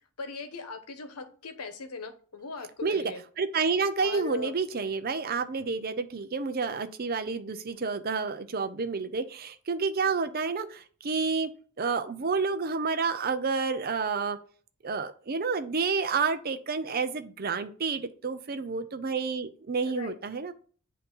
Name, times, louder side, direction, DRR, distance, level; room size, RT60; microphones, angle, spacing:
voice 1, 0.2-3.2 4.0-4.5 19.8-20.2, left 4 dB, 85° left, 7 dB, 1.0 m, -39 dB
voice 2, 3.4-11.5 11.8-14.4 14.8-20.5, right 4 dB, 40° right, 10 dB, 0.5 m, -29 dB
8.0 x 2.8 x 5.4 m, 0.43 s
head